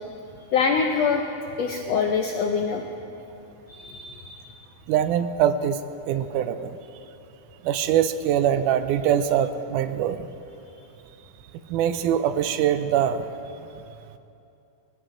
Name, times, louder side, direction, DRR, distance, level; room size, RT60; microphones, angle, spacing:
voice 1, 0.5-1.2 1.6-2.8 3.7-4.4, left 6 dB, 80° left, 3 dB, 1.5 m, -24 dB
voice 2, 4.9-5.8 6.1-6.8 7.6-10.3 11.7-13.3, right 9 dB, 80° right, 11 dB, 2.0 m, -23 dB
22.0 x 16.0 x 3.8 m, 2.8 s
omnidirectional pair, 3.8 m